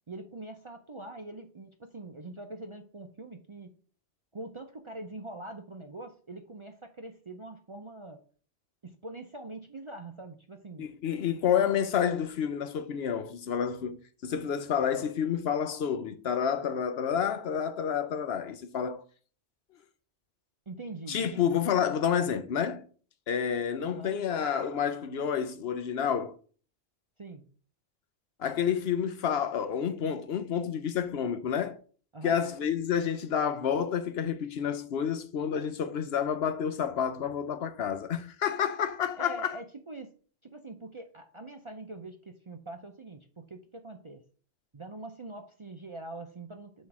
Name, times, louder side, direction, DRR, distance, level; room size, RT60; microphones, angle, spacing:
voice 1, 0.1-3.7 4.3-8.2 8.8-10.9 20.7-21.6 23.8-24.2 27.2-27.4 32.1-32.4 39.2-40.1 40.4-44.2 44.7-46.9, right 2 dB, 35° right, 0.5 m, -43 dB
voice 2, 10.8-19.0 21.1-22.8 23.3-26.3 28.4-31.8 32.2-39.6, left 8 dB, 65° left, 0.8 m, -29 dB
7.2 x 3.2 x 6.0 m
omnidirectional pair, 1.2 m